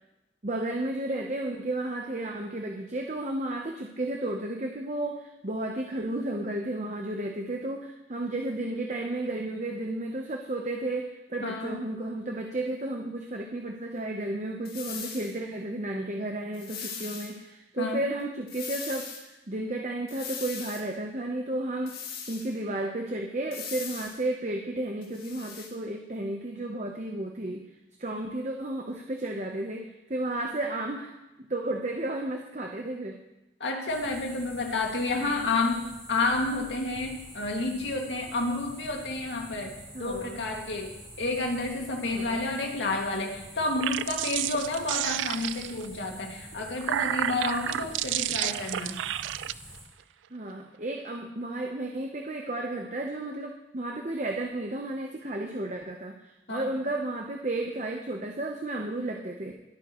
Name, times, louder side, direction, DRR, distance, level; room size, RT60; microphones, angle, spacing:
voice 1, 0.4-27.6 28.0-33.2 35.0-35.4 39.9-40.4 42.0-42.4 50.3-59.5, right 1 dB, 40° right, 2 dB, 0.9 m, -33 dB
voice 2, 11.4-11.8 17.8-18.0 33.6-49.0 56.5-56.7, left 2 dB, 75° left, 1 dB, 2.1 m, -30 dB
sound 1, 14.6-15.3 16.5-17.3 18.5-19.2 20.1-20.8 21.9-22.5 23.5-24.2 25.0-25.7, left 6 dB, 55° left, 2.1 m, -39 dB
sound 2, 33.9-49.8, equal, 5° right, 3.9 m, -47 dB
sound 3, 43.6-45.9 46.5-49.5, right 12 dB, 90° right, 0.3 m, -31 dB
21.0 x 9.0 x 3.1 m, 0.96 s
head